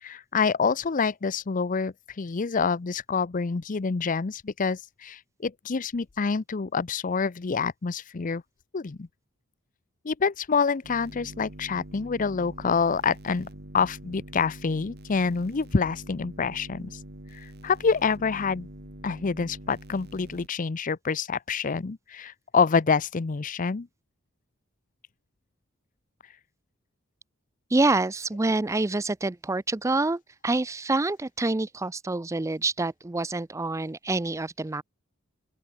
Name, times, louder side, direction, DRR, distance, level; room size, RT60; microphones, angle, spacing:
voice 1, 0.0-8.4 8.7-9.1 10.0-13.5 13.7-17.0 17.3-18.7 19.0-23.9, left 5 dB, 40° left, 0.6 m, -27 dB
sound 1, 10.8-20.5, right 1 dB, 55° right, 2.0 m, -45 dB
voice 2, 27.7-34.8, right 2 dB, 15° right, 0.4 m, -27 dB
open air
head